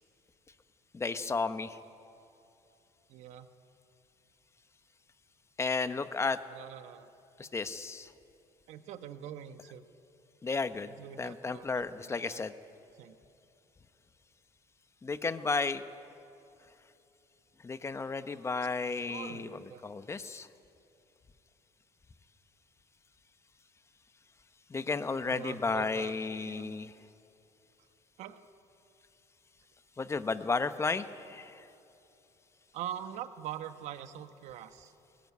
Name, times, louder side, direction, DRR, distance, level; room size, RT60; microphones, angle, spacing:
voice 1, 0.9-1.8 5.6-6.4 7.4-8.1 10.4-10.9 11.2-12.5 15.0-15.8 17.6-20.5 24.7-26.9 30.0-31.7, left 4 dB, 25° left, 11 dB, 1.0 m, -33 dB
voice 2, 3.1-3.5 6.5-7.1 8.7-9.8 10.9-12.4 13.0-13.1 18.9-19.9 25.2-26.8 28.2-28.4 32.7-34.9, right 10 dB, 75° right, 9 dB, 1.2 m, -44 dB
20.5 x 18.0 x 9.6 m, 2.8 s
cardioid pair, 105°, 12 cm